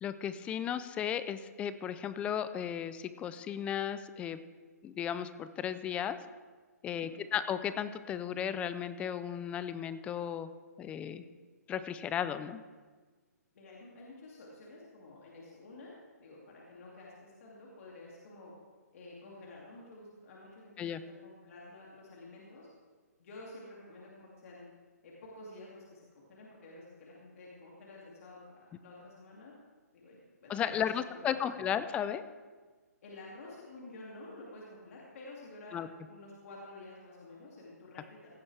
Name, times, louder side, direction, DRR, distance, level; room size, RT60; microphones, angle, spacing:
voice 1, 0.0-4.4 4.8-6.2 6.8-10.5 10.8-11.2 11.7-12.6 20.8-21.0 30.5-32.2 35.7-35.9, left 9 dB, 15° left, 13 dB, 0.4 m, -35 dB
voice 2, 13.5-18.5 18.9-22.7 23.2-24.6 25.0-29.5 29.9-31.6 33.0-35.8 36.1-38.4, left 2 dB, 55° left, -4 dB, 2.5 m, -51 dB
16.5 x 9.6 x 3.4 m, 1.4 s
hypercardioid pair, 145°, 9 cm